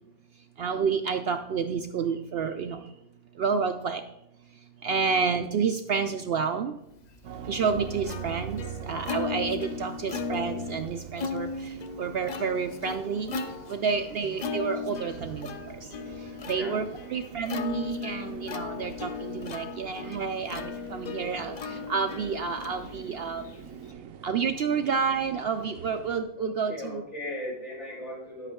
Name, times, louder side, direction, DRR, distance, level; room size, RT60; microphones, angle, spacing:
voice 1, 0.6-2.8 3.4-4.0 4.8-6.7 7.5-13.4 13.7-15.8 16.5-23.4 24.2-27.0, right 5 dB, 65° right, 7 dB, 0.6 m, -29 dB
Plucked string instrument, 7.2-23.9, left 5 dB, 50° left, 0.5 m, -37 dB
sound 1, 7.2-26.2, right 7 dB, 80° right, 1.0 m, -44 dB
voice 2, 16.5-16.8 26.4-28.5, left 1 dB, 75° left, -4 dB, 4.7 m, -37 dB
10.5 x 8.1 x 3.6 m, 0.84 s
omnidirectional pair, 1.4 m